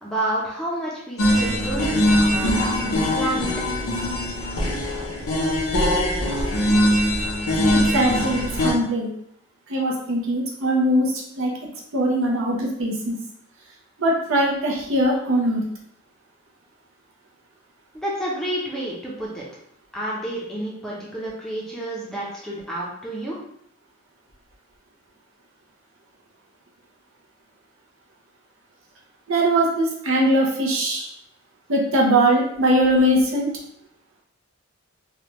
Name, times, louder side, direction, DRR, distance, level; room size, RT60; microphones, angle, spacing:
voice 1, 0.0-3.5 17.9-19.5 19.9-23.4, right 1 dB, ahead, -6 dB, 0.6 m, -29 dB
sound 1, 1.2-8.7, left 1 dB, 85° left, 0.7 m, -21 dB
voice 2, 7.7-9.1 9.7-11.1 11.4-11.5 11.9-13.1 14.0-15.6 29.3-31.1 31.7-33.5, right 1 dB, 70° right, -2 dB, 0.7 m, -21 dB
3.4 x 2.3 x 3.0 m, 0.71 s
head